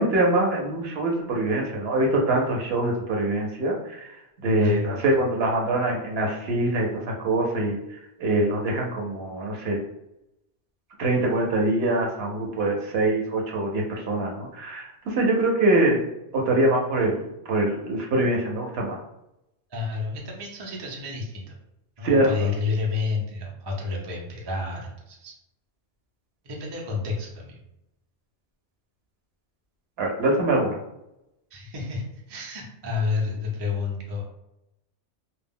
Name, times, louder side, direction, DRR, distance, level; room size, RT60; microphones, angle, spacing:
voice 1, 0.0-4.0 4.4-7.8 8.2-9.8 11.0-16.0 16.3-19.0 22.0-22.5 30.0-30.8, right 1 dB, 65° right, 0 dB, 0.8 m, -24 dB
voice 2, 4.6-5.0 19.7-21.5 22.0-25.3 26.4-27.6 31.5-34.3, left 4 dB, 35° right, -1 dB, 0.4 m, -30 dB
2.2 x 2.0 x 3.6 m, 0.86 s
omnidirectional pair, 1.2 m